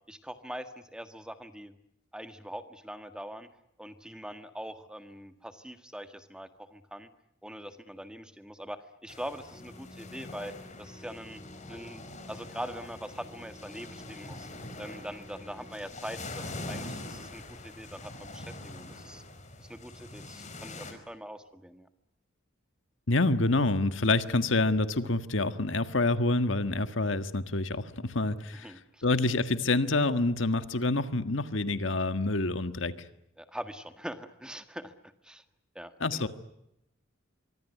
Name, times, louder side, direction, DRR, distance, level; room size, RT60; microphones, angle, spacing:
voice 1, 0.1-1.7 2.1-3.5 3.8-7.1 7.4-11.4 11.7-14.5 14.8-19.2 19.6-21.9 28.6-29.0 33.4-34.9 35.2-35.4 35.7-36.3, equal, 5° right, 9 dB, 1.6 m, -43 dB
sound 1, 9.1-20.9, left 2 dB, 35° left, 4.7 m, -44 dB
sound 2, 9.5-15.7, left 1 dB, 20° left, 5.7 m, -52 dB
voice 2, 23.1-28.7 29.0-32.9 36.0-36.3, left 2 dB, 65° left, 10 dB, 1.6 m, -27 dB
25.0 x 24.0 x 9.4 m, 0.83 s
head